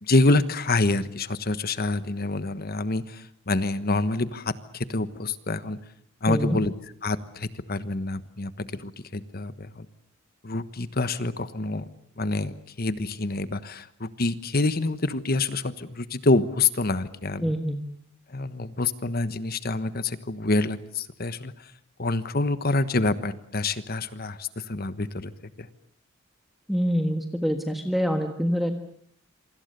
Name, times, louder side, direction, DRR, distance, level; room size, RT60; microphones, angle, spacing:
voice 1, 0.0-5.8 6.2-6.7 7.0-9.9 10.4-11.9 12.2-17.5 18.3-21.7 22.0-25.3 25.6-25.7, left 2 dB, 45° left, 13 dB, 1.3 m, -27 dB
voice 2, 6.3-6.6 17.4-17.8 26.7-28.7, equal, ahead, 5 dB, 1.5 m, -25 dB
27.5 x 25.0 x 6.9 m, 0.63 s
head